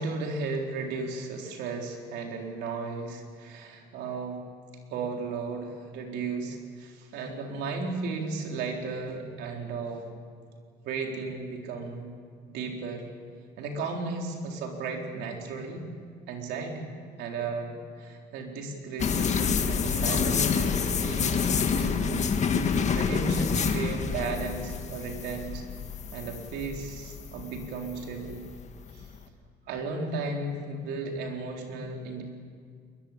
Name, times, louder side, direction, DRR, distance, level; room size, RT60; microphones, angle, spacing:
voice 1, 0.0-4.4 4.9-10.1 10.8-12.1 12.4-13.1 13.6-15.9 16.3-16.9 17.2-22.3 22.7-25.6 26.1-28.5 28.9-29.1 29.7-32.2, right 3 dB, 85° right, 2 dB, 4.0 m, -35 dB
sound 1, 19.0-29.1, left 6 dB, 45° left, 1.8 m, -28 dB
22.0 x 21.5 x 8.9 m, 2.1 s
cardioid pair, 110°, 17 cm